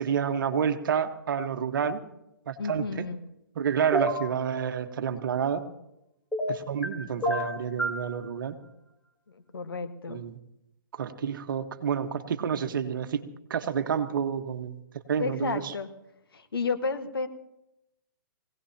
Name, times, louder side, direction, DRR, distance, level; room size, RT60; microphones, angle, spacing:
voice 1, 0.0-2.0 2.5-3.0 3.5-5.6 6.5-8.5 10.1-10.3 10.9-13.2 13.5-14.8 15.1-15.7, right 7 dB, 65° right, 7 dB, 1.4 m, -29 dB
voice 2, 2.6-3.2 9.3-10.2 15.2-15.9 16.3-17.3, left 4 dB, 90° left, 7 dB, 1.6 m, -32 dB
sound 1, 3.9-4.3 6.3-6.9 7.2-8.0, right 1 dB, 5° left, 1.8 m, -27 dB
21.5 x 17.5 x 2.9 m, 0.86 s
hypercardioid pair, 140°, 12 cm